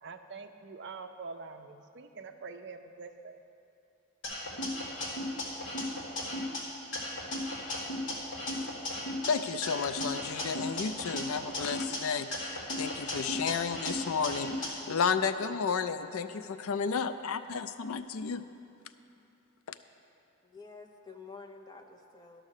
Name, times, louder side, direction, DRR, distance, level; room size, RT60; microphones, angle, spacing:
voice 1, 0.0-3.4, right 4 dB, 50° right, 7 dB, 0.5 m, -45 dB
sound 1, 4.2-6.6 6.9-9.3 9.6-12.0 12.3-14.7, left 1 dB, 55° left, 2.0 m, -35 dB
voice 2, 9.3-18.4, left 6 dB, 70° left, 11 dB, 0.4 m, -32 dB
voice 3, 20.4-22.4, left 4 dB, 20° left, 2 dB, 0.6 m, -49 dB
12.0 x 6.3 x 6.5 m, 2.6 s
head